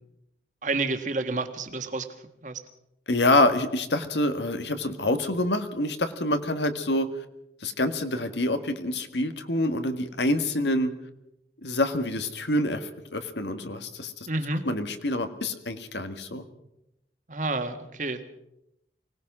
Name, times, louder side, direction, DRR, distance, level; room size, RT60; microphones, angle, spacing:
voice 1, 0.6-2.1 2.4-2.6 14.3-14.6 17.3-18.2, right 3 dB, 45° right, 7 dB, 1.8 m, -29 dB
voice 2, 3.1-7.1 7.6-10.9 11.6-14.3 14.7-16.4, left 1 dB, 85° left, 8 dB, 1.8 m, -26 dB
24.0 x 18.0 x 6.1 m, 0.85 s
head